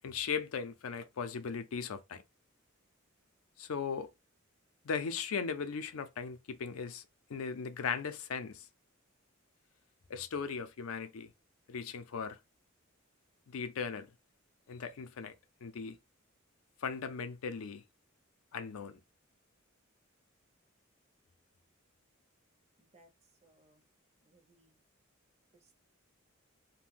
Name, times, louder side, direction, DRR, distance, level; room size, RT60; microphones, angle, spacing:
voice 1, 0.0-2.2 3.6-4.1 4.8-7.0 7.3-8.7 10.1-11.3 11.7-12.4 13.5-14.1 14.7-15.3 15.6-16.0 16.8-17.8 18.5-19.0, left 6 dB, 85° left, 0.5 m, -38 dB
voice 2, 22.8-23.1 23.4-23.8 24.2-24.8 25.5-25.7, right 2 dB, 30° right, 0.6 m, -65 dB
2.5 x 2.1 x 3.5 m
head